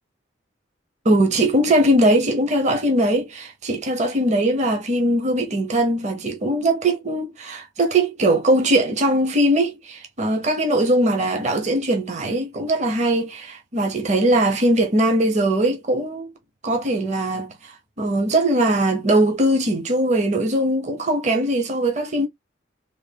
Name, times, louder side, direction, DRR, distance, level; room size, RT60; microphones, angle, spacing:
voice 1, 1.0-16.3 16.6-22.3, right 1 dB, 40° right, 0.7 m, -20 dB
3.4 x 2.2 x 3.4 m
head